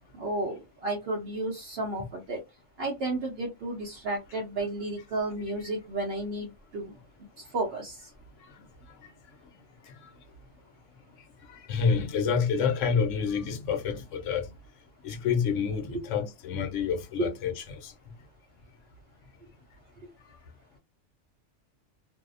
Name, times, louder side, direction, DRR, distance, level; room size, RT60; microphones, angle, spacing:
voice 1, 0.2-2.4 2.8-6.9 7.4-8.1 15.9-16.0 17.2-17.3, right 2 dB, 60° right, 0.8 m, -32 dB
voice 2, 11.5-14.5 15.0-17.9, left 6 dB, 85° left, 1.0 m, -28 dB
2.7 x 2.0 x 2.4 m
omnidirectional pair, 1.2 m